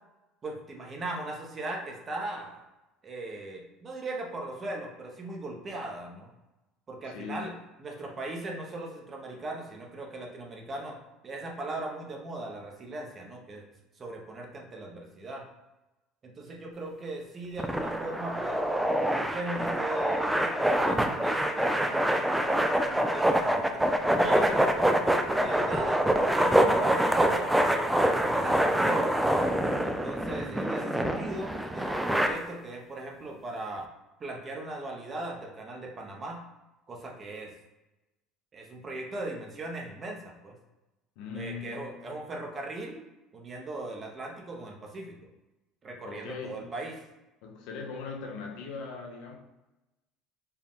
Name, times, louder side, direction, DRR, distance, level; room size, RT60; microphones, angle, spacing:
voice 1, 0.4-2.6 3.0-6.3 6.9-7.5 7.8-11.0 11.2-13.6 14.0-15.5 16.2-18.6 19.0-23.9 24.2-26.0 26.3-27.9 28.2-29.2 29.8-33.9 34.2-36.4 36.9-37.5 38.5-40.6 41.3-43.0 43.3-45.2 45.8-46.9, right 2 dB, 30° right, 0 dB, 0.8 m, -38 dB
voice 2, 7.1-7.6 41.2-41.9 46.0-46.7 47.4-49.4, left 5 dB, 80° left, 2 dB, 0.8 m, -39 dB
sound 1, 17.6-32.3, right 1 dB, 5° right, 0.4 m, -25 dB
4.5 x 2.3 x 3.6 m, 1.0 s
cardioid pair, 120°, 0 cm